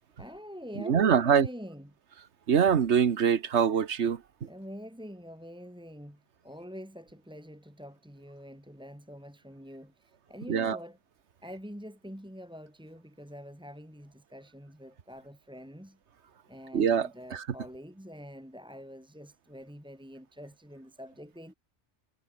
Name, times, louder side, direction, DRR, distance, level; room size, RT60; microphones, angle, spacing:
voice 1, 0.2-1.9 4.5-11.0 11.4-16.0 16.5-21.5, equal, 5° right, 2.6 m, -45 dB
voice 2, 0.8-1.5 2.5-4.2 10.5-10.8 16.7-17.4, right 7 dB, 75° right, 1.4 m, -24 dB
omnidirectional pair, 1.2 m